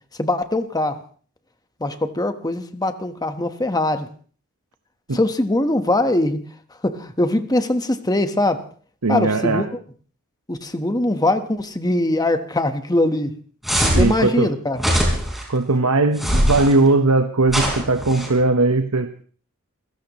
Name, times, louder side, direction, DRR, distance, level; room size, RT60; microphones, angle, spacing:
voice 1, 0.2-1.0 1.8-4.1 5.1-6.4 6.8-8.6 9.1-9.7 10.5-13.3 14.0-14.8, left 1 dB, 15° left, 8 dB, 1.2 m, -21 dB
voice 2, 9.0-9.6 13.9-14.5 15.5-19.2, right 3 dB, 85° right, 7 dB, 1.1 m, -19 dB
sound 1, 13.6-14.1 14.8-15.4 16.2-16.7 17.5-18.3, equal, ahead, 5.0 m, -20 dB
26.5 x 16.0 x 3.1 m, 0.42 s
head